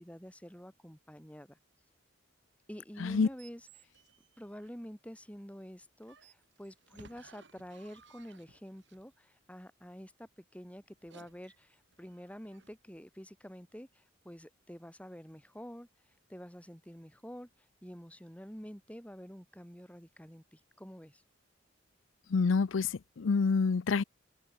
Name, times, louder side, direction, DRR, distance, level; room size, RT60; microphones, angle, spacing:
voice 1, 0.0-1.9 2.7-3.9 4.4-21.2, equal, 5° left, 4.2 m, -48 dB
sound 1, 3.0-5.0 6.0-9.1 10.9-12.9, right 4 dB, 60° right, 4.4 m, -60 dB
voice 2, 22.3-24.0, left 4 dB, 75° left, 0.5 m, -27 dB
open air
head